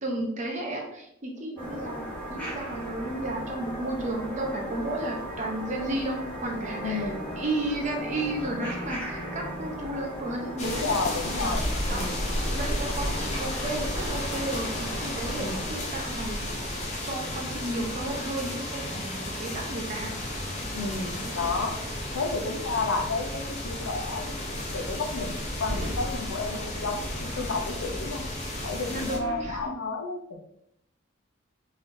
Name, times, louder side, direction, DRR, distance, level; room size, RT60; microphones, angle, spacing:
voice 1, 0.0-10.8 11.3-11.6 11.9-12.1 12.4-16.4 17.0-20.1 21.2-21.5 28.9-29.6, right 1 dB, 35° right, 1 dB, 0.6 m, -33 dB
sound 1, 1.6-15.7, equal, 10° left, 0.9 m, -37 dB
voice 2, 6.8-7.2 10.6-11.6 11.9-12.3 15.3-15.7 20.7-21.8 22.1-28.2 28.6-30.4, left 3 dB, 85° left, 4 dB, 0.6 m, -31 dB
sound 2, 10.6-29.2, left 1 dB, 35° left, 0.6 m, -33 dB
sound 3, 20.1-29.7, equal, 15° right, 1.3 m, -41 dB
3.8 x 3.3 x 2.6 m, 0.76 s
head